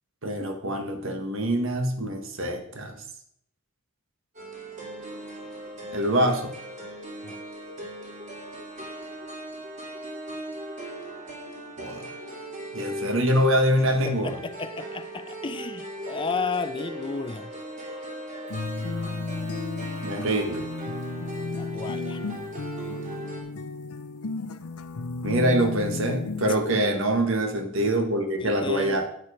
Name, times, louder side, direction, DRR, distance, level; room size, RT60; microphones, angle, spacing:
voice 1, 0.2-3.0 5.9-6.5 11.8-12.1 12.7-14.4 20.0-20.6 25.2-29.1, right 1 dB, 60° right, 1.6 m, -25 dB
sound 1, 4.3-23.4, right 1 dB, 35° right, 2.8 m, -38 dB
voice 2, 14.0-17.5 21.6-22.2 28.4-29.1, left 4 dB, 20° left, 0.4 m, -33 dB
sound 2, 18.5-26.5, left 3 dB, 80° left, 0.6 m, -34 dB
9.2 x 7.4 x 5.0 m
head